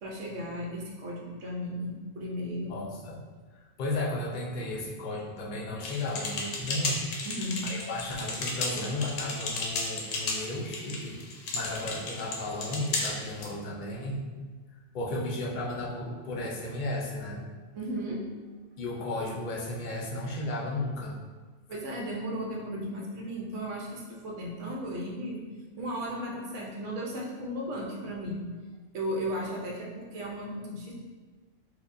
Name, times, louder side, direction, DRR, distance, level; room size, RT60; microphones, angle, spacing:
voice 1, 0.0-2.7 7.3-7.7 17.7-18.2 21.7-25.4 25.8-28.4 28.9-30.9, equal, 65° right, -2 dB, 1.0 m, -35 dB
voice 2, 2.7-3.2 3.8-7.0 7.6-11.2 11.5-14.2 14.9-17.4 18.8-21.1, left 1 dB, 55° left, -4 dB, 0.5 m, -34 dB
sound 1, 5.8-13.5, left 3 dB, 70° left, 1.0 m, -34 dB
4.5 x 2.2 x 2.6 m, 1.4 s
omnidirectional pair, 1.4 m